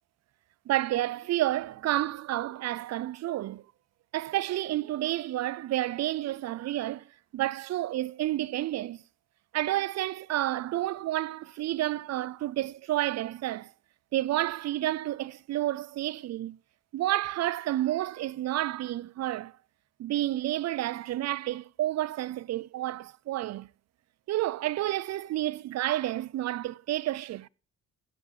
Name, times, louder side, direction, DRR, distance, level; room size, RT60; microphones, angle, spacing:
voice 1, 0.7-3.6 4.1-7.1 7.3-9.0 9.5-13.7 14.1-16.6 16.9-19.5 20.0-23.7 24.3-27.5, right 14 dB, 60° right, 0.5 m, -30 dB
16.0 x 7.4 x 4.9 m
cardioid pair, 90°, 30 cm